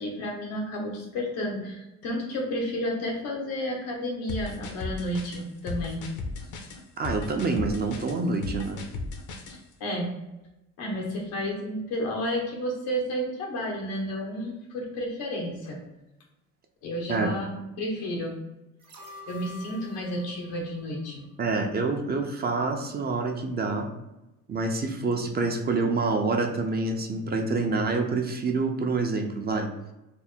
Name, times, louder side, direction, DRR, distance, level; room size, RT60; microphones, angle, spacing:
voice 1, 0.0-6.1 9.5-10.1 10.8-15.8 16.8-18.4 19.3-21.2, equal, 90° left, 0 dB, 1.1 m, -31 dB
sound 1, 4.3-9.6, left 3 dB, 60° left, 0.7 m, -36 dB
voice 2, 7.0-8.8 17.1-17.4 21.4-23.9 24.5-29.7, right 3 dB, 30° right, 3 dB, 0.5 m, -27 dB
sound 2, 18.8-21.9 22.3-22.4, left 2 dB, 45° right, 1.0 m, -47 dB
3.4 x 2.1 x 4.2 m, 0.96 s
cardioid pair, 100°, 35 cm